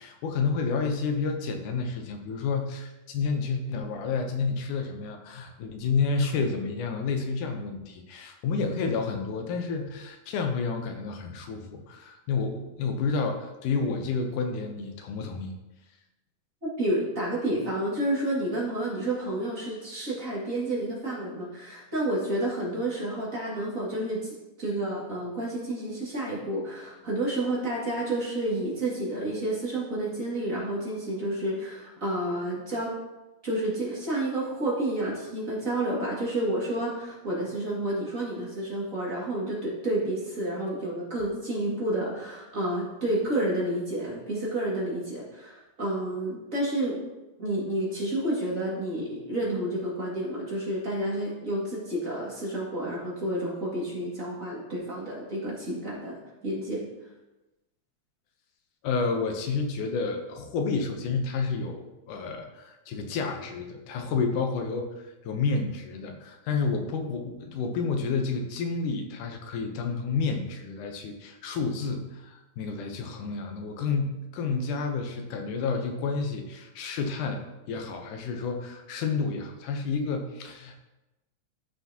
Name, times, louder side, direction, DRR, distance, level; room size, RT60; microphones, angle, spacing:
voice 1, 0.0-15.5 58.8-64.9 65.2-80.8, left 4 dB, 90° left, 4 dB, 2.5 m, -30 dB
voice 2, 16.6-24.3 24.6-32.9 33.4-47.0 47.4-56.1 56.4-56.8, right 1 dB, 30° right, -6 dB, 2.2 m, -30 dB
13.5 x 5.8 x 2.9 m, 1.0 s
omnidirectional pair, 3.5 m